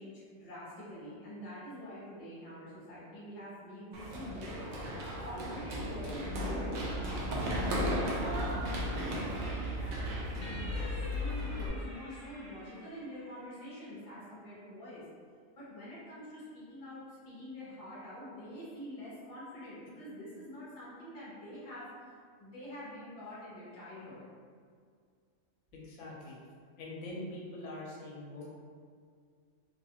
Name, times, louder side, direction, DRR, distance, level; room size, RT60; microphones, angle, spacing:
voice 1, 0.0-4.9 5.2-6.8 7.4-15.0 15.5-24.2, equal, 30° left, -9 dB, 0.8 m, -46 dB
Run, 3.9-11.7, equal, 65° right, 0.5 m, -35 dB
sound 1, 10.4-14.0, equal, 65° left, 1.0 m, -51 dB
voice 2, 25.7-26.4 26.8-28.5, left 1 dB, 90° left, -4 dB, 1.0 m, -43 dB
2.5 x 2.3 x 2.9 m, 2.1 s
omnidirectional pair, 1.4 m